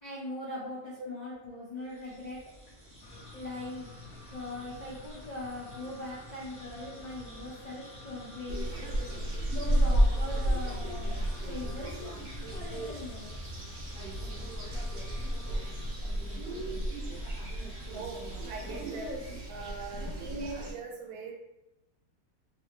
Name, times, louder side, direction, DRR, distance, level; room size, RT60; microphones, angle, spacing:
voice 1, 0.0-2.4 3.3-3.9 4.3-8.7 9.5-11.1 11.4-11.9 12.5-13.3 19.9-20.3, left 2 dB, 45° left, -7 dB, 0.6 m, -41 dB
sound 1, 1.8-19.6, equal, 10° right, 1.0 m, -50 dB
sound 2, 3.0-15.9, left 2 dB, 80° left, 1.2 m, -51 dB
sound 3, 8.5-20.7, right 1 dB, 50° right, 0.7 m, -32 dB
voice 2, 17.9-19.1 19.5-21.3, right 4 dB, 90° right, 0 dB, 1.2 m, -41 dB
2.8 x 2.7 x 3.2 m, 0.91 s
omnidirectional pair, 1.6 m